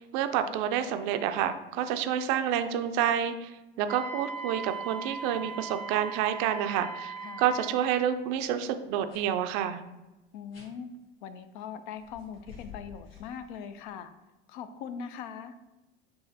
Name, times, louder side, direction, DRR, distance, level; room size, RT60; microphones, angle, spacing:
voice 1, 0.0-3.5 3.8-9.8, right 9 dB, 50° right, 9 dB, 0.5 m, -29 dB
Wind instrument woodwind instrument, 3.9-8.0, right 5 dB, 5° left, 0.7 m, -39 dB
voice 2, 7.2-7.5 10.3-10.9 11.2-14.1 14.5-15.6, left 7 dB, 55° left, 11 dB, 0.5 m, -41 dB
sound 1, 7.8-7.9 8.2-8.4 9.1-9.3 10.5-10.7 12.0-13.9, left 6 dB, 75° left, 1.2 m, -50 dB
6.9 x 2.8 x 2.7 m, 1.0 s
figure-of-eight pair, 75°, 30 cm